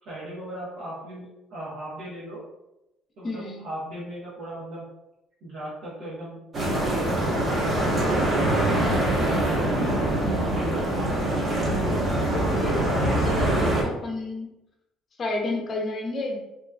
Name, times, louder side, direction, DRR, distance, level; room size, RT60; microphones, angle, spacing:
voice 1, 0.0-2.4 3.2-4.9 5.4-8.3 8.9-11.8, right 1 dB, 75° right, -8 dB, 0.9 m, -37 dB
voice 2, 3.2-3.6 9.2-9.5 12.3-14.5 15.2-16.4, left 2 dB, 40° left, 0 dB, 0.7 m, -31 dB
sound 1, 6.5-13.8, right 1 dB, 40° right, 0.8 m, -24 dB
2.8 x 2.3 x 2.2 m, 0.92 s
supercardioid pair, 90°, 0 cm